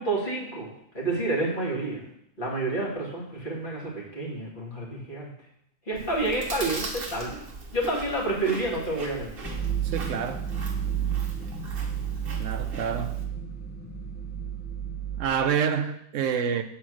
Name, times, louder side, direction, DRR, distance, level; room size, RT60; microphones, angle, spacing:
voice 1, 0.0-2.0 2.4-5.3 5.9-7.4 7.7-9.3, right 2 dB, 35° left, 2.4 m, -29 dB
Chewing mastication, 5.9-13.2, right 3 dB, 45° right, 1.2 m, -39 dB
sound 1, 9.4-15.3, right 8 dB, 10° left, 0.4 m, -31 dB
voice 2, 9.8-10.5 12.4-13.2 15.1-16.6, right 7 dB, 65° right, 0.9 m, -28 dB
7.1 x 4.4 x 6.3 m
omnidirectional pair, 1.5 m